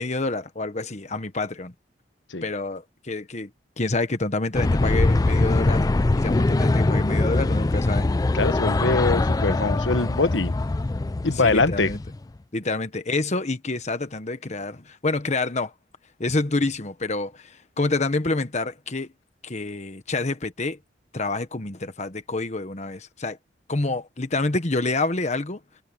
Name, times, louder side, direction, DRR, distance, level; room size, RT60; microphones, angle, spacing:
voice 1, 0.0-1.7 2.4-3.5 3.8-5.9 6.1-8.1 11.3-12.0 12.5-15.7 16.2-19.1 19.4-20.8 21.1-23.4 23.7-25.6, left 2 dB, 40° left, 1.2 m, -27 dB
sound 1, 4.5-12.2, left 2 dB, 20° left, 0.4 m, -22 dB
voice 2, 8.3-10.5 11.2-11.9, left 3 dB, 90° left, 1.3 m, -23 dB
head